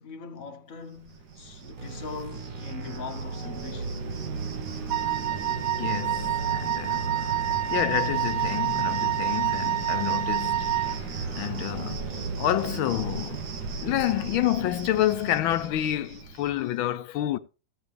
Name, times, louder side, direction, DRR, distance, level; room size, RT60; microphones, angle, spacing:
voice 1, 0.0-4.0, left 5 dB, 50° left, 1.2 m, -41 dB
Cricket, 1.0-16.7, right 6 dB, 60° right, 1.4 m, -36 dB
sound 1, 1.8-13.0, right 2 dB, 30° right, 1.1 m, -39 dB
Wind instrument woodwind instrument, 4.9-11.0, right 11 dB, 85° right, 1.5 m, -28 dB
voice 2, 5.8-7.1 7.7-11.0 11.4-13.5 13.8-17.4, left 13 dB, 90° left, 1.5 m, -28 dB
14.5 x 8.4 x 3.3 m
omnidirectional pair, 2.1 m